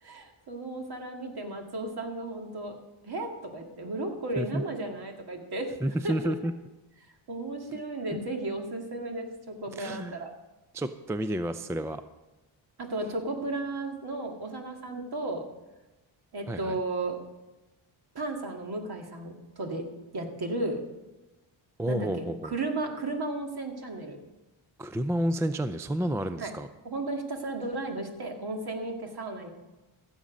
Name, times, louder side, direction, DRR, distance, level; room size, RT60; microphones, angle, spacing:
voice 1, 0.0-2.8 3.0-5.7 6.0-6.3 7.3-10.3 12.8-15.4 16.3-17.2 18.1-19.9 20.1-20.8 21.9-24.2 26.4-26.5 26.8-29.5, right 2 dB, 50° right, 3 dB, 2.2 m, -34 dB
voice 2, 5.8-6.5 9.8-10.2 10.7-12.0 16.5-16.8 21.8-22.5 24.8-26.7, right 1 dB, 5° right, 11 dB, 0.4 m, -30 dB
15.5 x 7.4 x 5.2 m, 1.1 s
cardioid pair, 100°, 49 cm